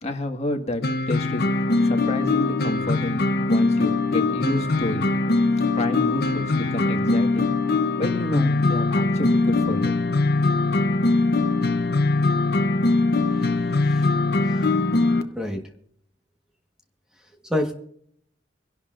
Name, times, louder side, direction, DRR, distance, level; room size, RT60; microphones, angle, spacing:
voice 1, 0.0-5.0 5.5-7.5 8.0-9.9, left 1 dB, 35° left, 3 dB, 1.8 m, -29 dB
sound 1, 0.8-15.2, left 3 dB, 55° left, 0.9 m, -22 dB
voice 2, 13.8-14.1 14.4-14.7 15.3-15.6 17.5-17.7, left 1 dB, 5° right, 2 dB, 1.4 m, -27 dB
25.0 x 11.5 x 2.6 m, 0.67 s
head